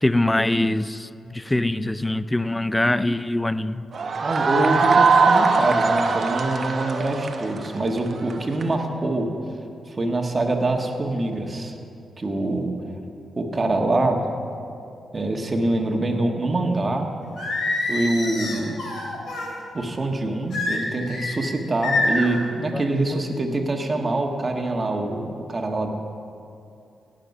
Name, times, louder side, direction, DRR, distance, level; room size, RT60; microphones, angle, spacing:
voice 1, 0.0-3.9 22.7-23.4 24.0-24.1, left 1 dB, 15° left, 14 dB, 0.4 m, -24 dB
sound 1, 3.9-8.7, right 4 dB, 55° right, 1.0 m, -20 dB
voice 2, 4.2-9.3 9.9-11.7 12.2-12.7 13.4-14.2 15.1-17.1 17.9-18.8 19.7-25.9, right 2 dB, 35° right, 3 dB, 1.6 m, -24 dB
Singing, 17.4-19.5 20.5-21.4 21.8-22.3, left 2 dB, 70° left, 2.5 m, -26 dB
17.5 x 6.6 x 5.6 m, 2.6 s
cardioid pair, 55°, 0 cm